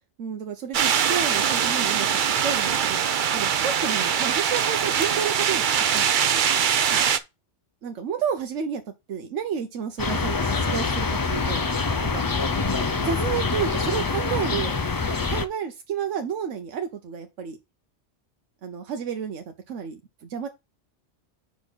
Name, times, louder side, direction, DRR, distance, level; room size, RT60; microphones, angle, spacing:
voice 1, 0.2-3.0 3.3-6.5 6.9-7.1 7.8-8.8 9.1-11.6 12.0-12.2 12.9-14.8 15.3-17.6 18.6-20.5, right 7 dB, 90° right, 1.1 m, -31 dB
sound 1, 0.7-7.2, right 8 dB, 55° right, 0.6 m, -22 dB
sound 2, 10.0-15.5, left 4 dB, 35° left, 0.3 m, -25 dB
5.3 x 4.1 x 6.1 m
omnidirectional pair, 1.2 m